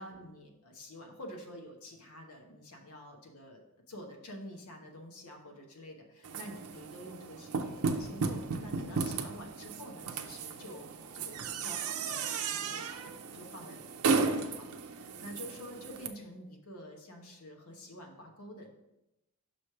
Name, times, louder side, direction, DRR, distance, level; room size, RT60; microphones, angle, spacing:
voice 1, 0.0-13.8 14.1-18.7, equal, 85° left, 1 dB, 1.1 m, -48 dB
sound 1, 6.2-16.1, right 4 dB, 85° right, 0.6 m, -35 dB
6.0 x 3.2 x 5.8 m, 0.92 s
head